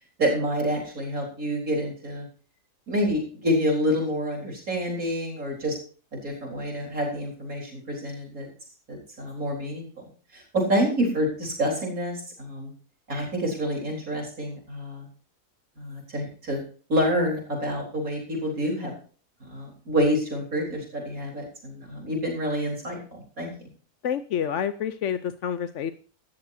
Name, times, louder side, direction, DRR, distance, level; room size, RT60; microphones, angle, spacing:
voice 1, 0.2-2.3 2.9-5.8 6.1-8.5 8.9-12.7 13.1-15.1 15.8-16.6 16.9-18.9 19.4-23.7, equal, 70° right, -1 dB, 4.5 m, -28 dB
voice 2, 24.0-25.9, left 8 dB, 60° left, 11 dB, 0.9 m, -28 dB
17.5 x 13.5 x 2.8 m, 0.40 s
omnidirectional pair, 1.6 m